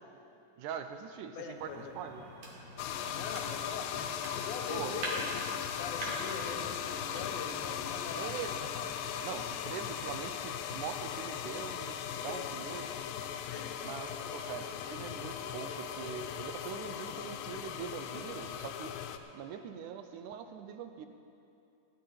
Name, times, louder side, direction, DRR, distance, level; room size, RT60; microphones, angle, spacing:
voice 1, 0.6-2.3 4.7-5.3 8.2-12.9 13.8-19.0 19.3-21.1, right 8 dB, 80° right, 8 dB, 1.9 m, -43 dB
voice 2, 1.4-2.0 3.1-8.4 12.2-12.9 13.5-13.8 14.1-14.4, left 6 dB, 70° left, 4 dB, 2.1 m, -44 dB
sound 1, 1.5-8.9, right 1 dB, 55° right, 3.1 m, -45 dB
sound 2, 2.8-19.2, left 9 dB, 90° left, 2.3 m, -38 dB
17.5 x 10.0 x 4.4 m, 2.8 s
omnidirectional pair, 3.9 m